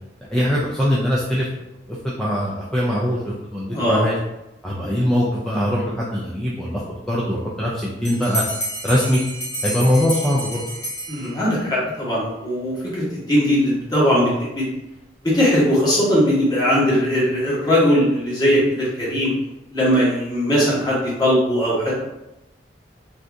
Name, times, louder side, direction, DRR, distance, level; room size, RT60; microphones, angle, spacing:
voice 1, 0.3-1.5 1.9-4.1 4.6-6.8 7.1-8.4 8.8-9.2 9.6-10.6, equal, 5° left, -6 dB, 0.4 m, -22 dB
voice 2, 3.7-4.1 4.7-5.1 11.1-14.7 15.2-19.3 19.7-22.0, equal, 25° left, -7 dB, 1.2 m, -19 dB
Bell, 8.0-11.7, equal, 75° left, 1.5 m, -30 dB
2.7 x 2.5 x 3.3 m, 0.92 s
head